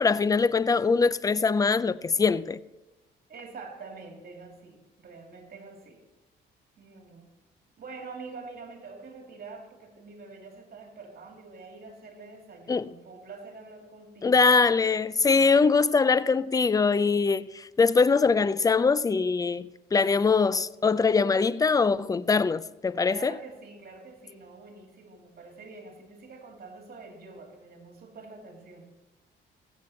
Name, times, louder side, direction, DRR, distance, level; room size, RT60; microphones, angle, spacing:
voice 1, 0.0-2.6 12.7-12.9 14.2-23.3, left 4 dB, 20° left, 0.3 m, -23 dB
voice 2, 3.3-6.0 6.8-7.3 7.8-14.5 23.0-28.9, right 4 dB, 50° right, 2.7 m, -46 dB
14.5 x 8.0 x 4.3 m
cardioid pair, 90°, 20 cm